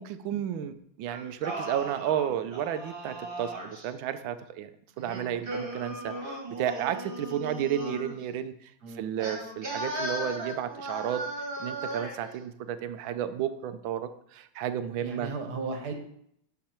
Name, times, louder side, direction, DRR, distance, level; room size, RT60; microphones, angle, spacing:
voice 1, 0.0-4.7 5.0-8.7 9.0-11.2 11.6-15.3, right 10 dB, 75° right, 10 dB, 1.4 m, -32 dB
Singing, 1.1-3.9 5.0-8.2 9.2-12.3, right 1 dB, 30° right, 1.8 m, -37 dB
voice 2, 8.8-9.3 15.0-15.9, right 4 dB, 55° right, 4 dB, 1.7 m, -36 dB
9.4 x 6.6 x 4.4 m, 0.71 s
omnidirectional pair, 2.2 m